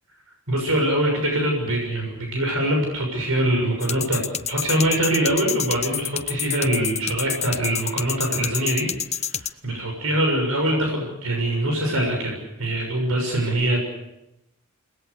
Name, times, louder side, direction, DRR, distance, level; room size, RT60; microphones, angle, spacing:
voice 1, 0.5-4.2 4.5-13.9, right 1 dB, 75° right, 1 dB, 6.5 m, -23 dB
sound 1, 3.8-9.5, left 8 dB, 30° left, 0.9 m, -28 dB
29.0 x 20.0 x 6.8 m, 0.91 s
head